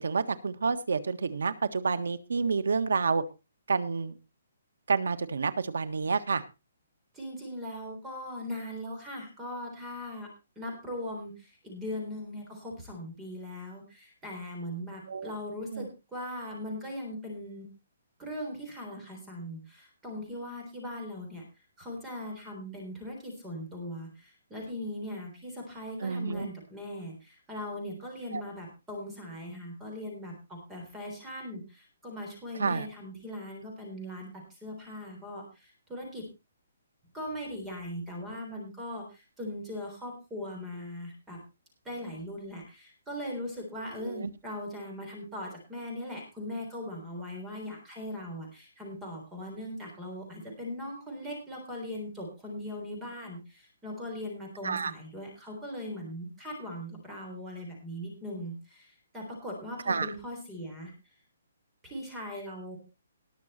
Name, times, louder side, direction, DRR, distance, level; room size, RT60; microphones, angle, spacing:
voice 1, 0.0-3.2 3.7-4.1 4.9-6.4 15.1-15.3 15.7-15.9 26.0-26.5 28.3-28.4 32.6-32.9 44.0-44.3 54.6-54.9 59.9-60.1, right 4 dB, 90° right, 12 dB, 1.5 m, -29 dB
voice 2, 7.1-10.3 10.6-17.7 18.2-21.4 21.8-36.3 37.1-41.4 41.8-60.9 61.8-62.8, left 1 dB, 5° right, 0 dB, 3.6 m, -40 dB
19.0 x 6.5 x 4.3 m, 0.29 s
hypercardioid pair, 175°, 0 cm